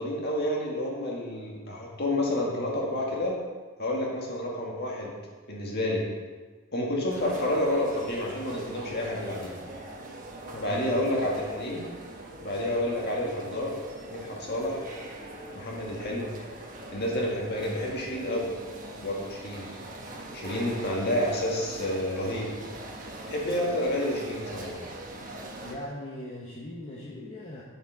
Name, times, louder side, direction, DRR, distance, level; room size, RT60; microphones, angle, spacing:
voice 1, 0.0-3.4 3.8-5.1 5.5-6.0 6.7-9.5 10.6-11.8 12.4-13.8 14.1-14.8 15.5-16.3 16.9-18.5 19.0-19.7 20.3-22.5 23.3-24.8, left 1 dB, 50° left, -3 dB, 1.8 m, -29 dB
sound 1, 7.1-25.7, right 1 dB, 40° right, 1.1 m, -42 dB
voice 2, 10.5-10.8 25.6-27.6, left 1 dB, 30° left, -5 dB, 0.9 m, -39 dB
7.3 x 6.6 x 4.7 m, 1.4 s
head